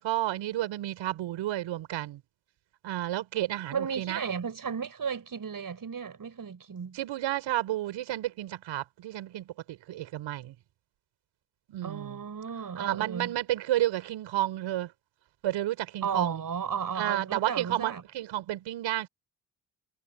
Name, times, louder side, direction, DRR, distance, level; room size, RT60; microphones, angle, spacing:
voice 1, 0.0-2.2 2.8-4.2 6.9-10.5 11.7-12.2 12.8-14.9 15.4-16.4 17.0-19.1, right 14 dB, 70° right, 5.3 m, -31 dB
voice 2, 3.7-7.0 11.8-13.4 16.0-18.0, right 6 dB, 45° right, 6.3 m, -34 dB
hypercardioid pair, 50°, 46 cm